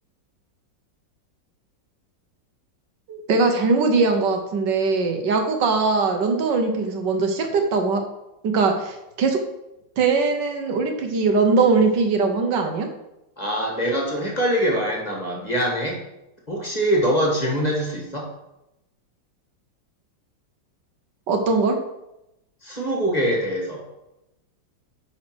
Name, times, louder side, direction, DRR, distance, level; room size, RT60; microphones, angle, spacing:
voice 1, 3.1-8.0 8.4-9.4 10.0-12.9 21.3-21.8, right 4 dB, 70° right, 4 dB, 1.6 m, -21 dB
voice 2, 13.4-16.0 16.5-18.3 22.6-23.8, equal, 20° left, -1 dB, 1.7 m, -23 dB
9.4 x 4.2 x 6.2 m, 0.90 s
omnidirectional pair, 2.0 m